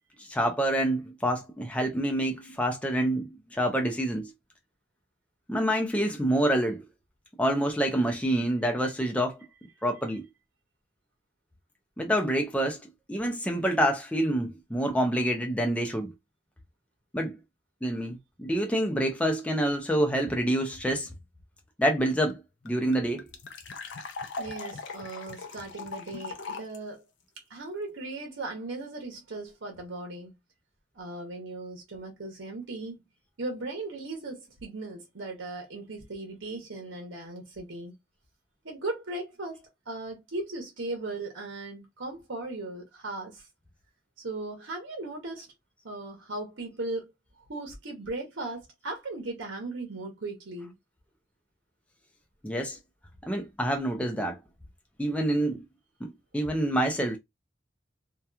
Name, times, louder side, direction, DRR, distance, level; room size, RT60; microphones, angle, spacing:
voice 1, 0.2-4.3 5.5-6.8 7.4-9.4 9.8-10.3 12.0-12.8 13.1-16.1 17.1-17.4 17.8-21.1 21.8-22.4 22.6-23.3 52.4-52.8 53.2-54.4 55.0-55.6 56.0-57.2, right 1 dB, 5° left, 0.4 m, -27 dB
sound 1, 22.0-22.1 22.3-22.4 22.7-26.8, left 4 dB, 80° left, 0.5 m, -40 dB
voice 2, 24.4-27.0 27.5-30.3 30.9-33.0 33.4-37.9 38.6-43.4 44.2-45.5 45.8-47.1 47.4-50.7 55.1-55.2, right 2 dB, 90° right, 0.9 m, -37 dB
2.8 x 2.2 x 2.3 m
head